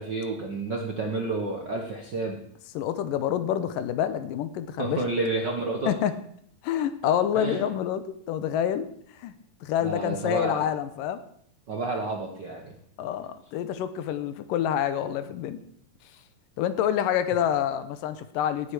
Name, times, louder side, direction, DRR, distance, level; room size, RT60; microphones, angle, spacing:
voice 1, 0.0-2.4 4.8-5.9 7.3-7.6 9.8-10.7 11.7-12.8, right 3 dB, 60° right, 1 dB, 1.1 m, -30 dB
voice 2, 2.7-5.0 5.9-6.1 6.6-8.9 9.2-9.3 9.6-11.2 13.0-15.6 16.6-18.7, left 10 dB, 85° left, 11 dB, 2.5 m, -27 dB
18.0 x 7.8 x 4.8 m, 0.67 s
omnidirectional pair, 3.9 m